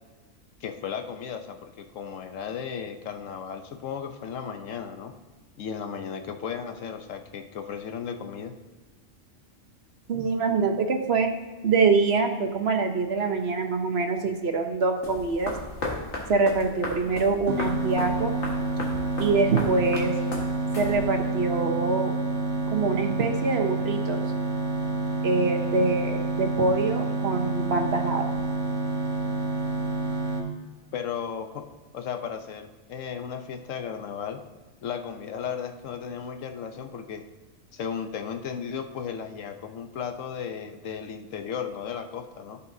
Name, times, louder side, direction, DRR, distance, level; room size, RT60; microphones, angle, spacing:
voice 1, 0.6-5.1 5.6-8.6 30.9-31.7 31.9-34.4 34.8-37.2 37.7-42.6, left 7 dB, 80° left, 7 dB, 1.1 m, -35 dB
voice 2, 10.1-11.3 11.6-15.5 16.3-18.4 19.2-20.1 20.8-22.1 22.7-24.2 25.2-28.4, right 4 dB, 55° right, 5 dB, 1.1 m, -25 dB
sound 1, 15.0-21.3, left 2 dB, 65° left, 1.9 m, -36 dB
sound 2, 17.5-30.4, right 3 dB, 75° right, 1.9 m, -28 dB
14.5 x 5.6 x 2.7 m, 1.3 s
omnidirectional pair, 1.3 m